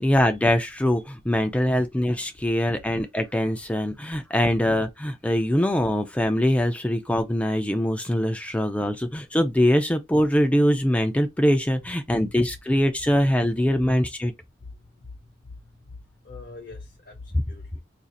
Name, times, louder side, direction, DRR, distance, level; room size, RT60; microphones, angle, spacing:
voice 1, 0.0-14.3, equal, 5° left, 0.3 m, -23 dB
voice 2, 12.2-12.5 13.5-13.6 14.6-17.8, left 3 dB, 50° left, 0.7 m, -44 dB
2.5 x 2.4 x 4.0 m
head